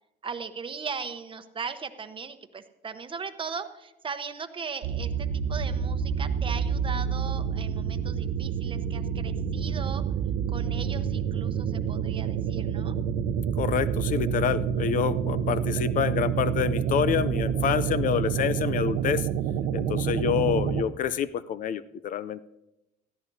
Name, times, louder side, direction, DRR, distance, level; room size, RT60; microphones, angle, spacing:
voice 1, 0.2-10.0 10.5-13.0, right 5 dB, 30° right, 9 dB, 1.0 m, -38 dB
sound 1, 4.8-20.8, right 8 dB, 80° right, 0.8 m, -28 dB
voice 2, 13.6-19.3 19.7-22.4, left 8 dB, 50° left, 16 dB, 0.5 m, -27 dB
20.0 x 14.0 x 2.7 m, 0.94 s
cardioid pair, 110°, 17 cm